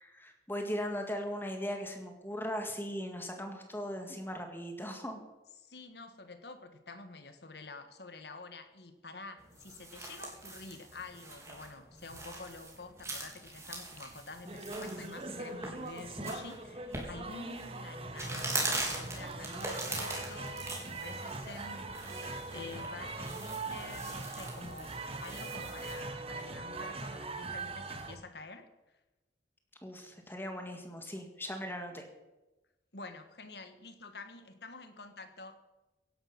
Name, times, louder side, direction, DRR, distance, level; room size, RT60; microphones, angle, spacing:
voice 1, 0.0-5.2 29.8-32.0, equal, 10° left, 4 dB, 1.9 m, -38 dB
voice 2, 5.6-28.7 32.9-35.6, left 3 dB, 65° left, 9 dB, 1.6 m, -48 dB
sound 1, 9.4-26.1, right 2 dB, 15° right, 3.9 m, -42 dB
sound 2, 14.4-28.2, right 3 dB, 30° right, 1.2 m, -41 dB
16.5 x 11.5 x 6.0 m, 1.1 s
head